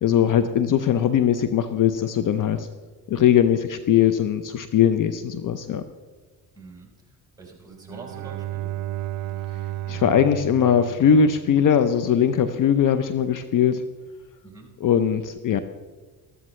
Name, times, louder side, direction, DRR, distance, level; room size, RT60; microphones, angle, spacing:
voice 1, 0.0-2.7 3.1-5.8 9.9-13.8 14.8-15.6, left 8 dB, 50° left, 10 dB, 0.7 m, -20 dB
voice 2, 6.5-6.9 7.4-8.7 14.4-14.7, right 3 dB, 10° right, -2 dB, 4.1 m, -44 dB
Bowed string instrument, 7.7-11.8, right 14 dB, 50° right, 0.5 m, -33 dB
14.0 x 13.5 x 3.2 m, 1.3 s
cardioid pair, 95°, 40 cm